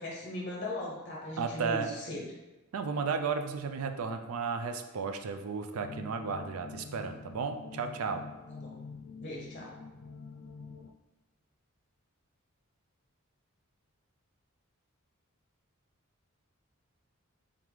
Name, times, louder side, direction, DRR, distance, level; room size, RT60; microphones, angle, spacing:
voice 1, 0.0-2.3 8.5-8.7 9.2-9.7, left 1 dB, 35° left, -2 dB, 0.6 m, -38 dB
voice 2, 1.4-1.9 2.7-8.2, right 5 dB, 80° right, 7 dB, 0.4 m, -34 dB
sound 1, 5.7-10.9, left 4 dB, 85° left, 0.4 m, -46 dB
3.8 x 3.5 x 3.1 m, 1.1 s
head